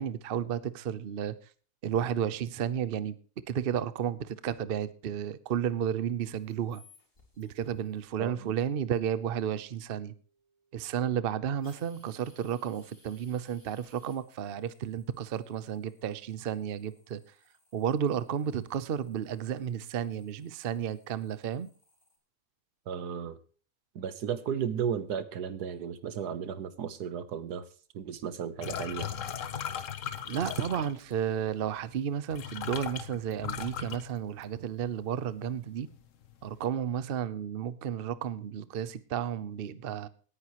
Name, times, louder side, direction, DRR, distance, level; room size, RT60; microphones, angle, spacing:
voice 1, 0.0-1.3 1.8-3.2 3.5-6.8 7.4-10.1 10.7-17.2 17.7-21.7 30.3-35.9 36.4-40.1, right 9 dB, 50° right, 0.7 m, -32 dB
sound 1, 6.2-22.2, left 2 dB, 35° left, 4.3 m, -65 dB
voice 2, 8.2-8.5 22.9-23.4 23.9-27.6 27.9-29.1, right 8 dB, 80° right, 1.5 m, -34 dB
sound 2, 28.6-31.2 32.0-32.1 32.3-34.7 35.1-35.5 35.9-36.6, left 8 dB, 55° left, 1.2 m, -38 dB
18.0 x 9.9 x 3.0 m
omnidirectional pair, 1.7 m